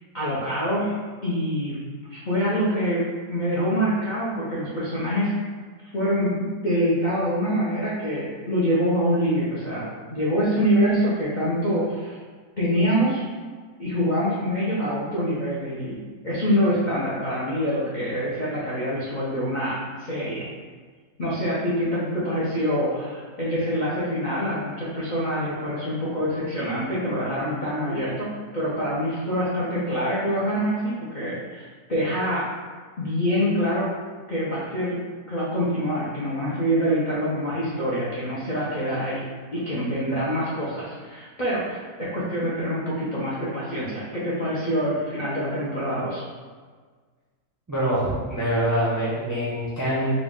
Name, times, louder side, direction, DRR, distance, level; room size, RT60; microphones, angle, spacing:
voice 1, 0.1-1.0 1.2-5.4 5.9-12.2 12.6-13.2 13.8-20.5 21.2-32.5 33.0-33.9 34.3-35.0 35.3-39.3 39.5-46.2, equal, 60° left, -8 dB, 0.4 m, -25 dB
voice 2, 47.7-50.1, right 1 dB, 25° right, -9 dB, 0.4 m, -24 dB
3.8 x 2.4 x 3.6 m, 1.5 s
omnidirectional pair, 1.8 m